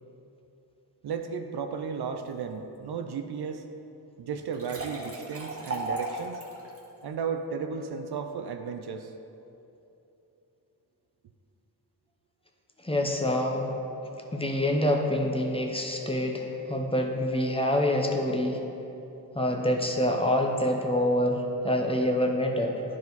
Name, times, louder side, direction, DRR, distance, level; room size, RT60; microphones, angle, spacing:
voice 1, 1.0-3.6 4.2-6.4 7.0-9.1, right 6 dB, 65° right, 7 dB, 0.6 m, -34 dB
sound 1, 4.4-6.8, right 2 dB, 35° right, 1.4 m, -35 dB
voice 2, 12.8-13.7 14.3-18.6 19.3-22.8, left 1 dB, 15° left, 2 dB, 0.9 m, -26 dB
10.5 x 4.7 x 4.0 m, 2.9 s
cardioid pair, 65°, 42 cm